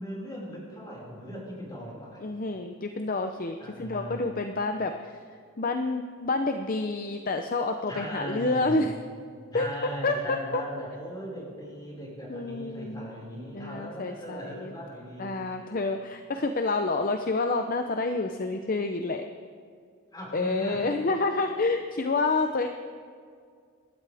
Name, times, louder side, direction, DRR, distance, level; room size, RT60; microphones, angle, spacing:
voice 1, 0.0-2.2 3.6-4.3 7.9-8.9 9.5-15.3 20.1-20.8, equal, 20° left, -4 dB, 5.3 m, -38 dB
voice 2, 2.2-5.1 5.6-8.9 9.5-10.6 12.3-13.1 13.5-14.8 15.2-19.2 20.3-22.7, left 3 dB, 40° left, 6 dB, 0.6 m, -28 dB
27.0 x 13.0 x 3.5 m, 2.1 s
head